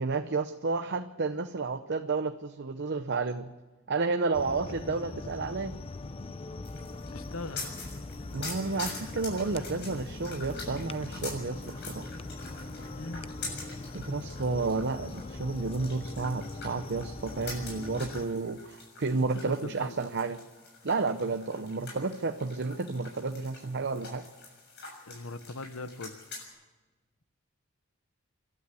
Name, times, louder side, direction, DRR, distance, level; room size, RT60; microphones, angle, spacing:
voice 1, 0.0-3.5 3.9-5.8 8.3-12.1 13.9-20.4 20.8-24.2, right 3 dB, 55° right, 8 dB, 0.7 m, -31 dB
sound 1, 4.3-18.3, left 2 dB, 25° left, 0.6 m, -41 dB
sound 2, 6.6-26.5, left 3 dB, 55° left, 7.0 m, -45 dB
voice 2, 7.1-7.7 12.9-13.3 19.2-20.0 25.1-26.2, left 3 dB, 70° left, 12 dB, 1.0 m, -40 dB
26.5 x 12.5 x 8.4 m, 1.3 s
head